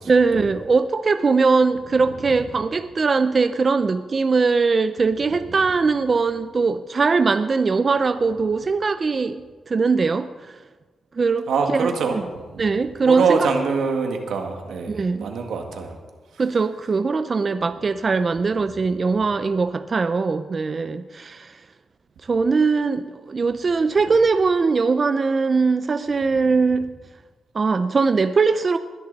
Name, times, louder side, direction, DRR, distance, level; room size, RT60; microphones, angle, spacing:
voice 1, 0.1-10.5 11.1-12.2 12.6-13.5 14.9-15.3 16.4-21.6 22.3-26.9 27.5-28.8, right 4 dB, 40° right, 0.5 m, -21 dB
voice 2, 11.5-12.2 12.5-12.6 13.1-15.9, right 5 dB, 90° right, 1.9 m, -24 dB
20.5 x 10.5 x 4.1 m
cardioid pair, 110°, 0 cm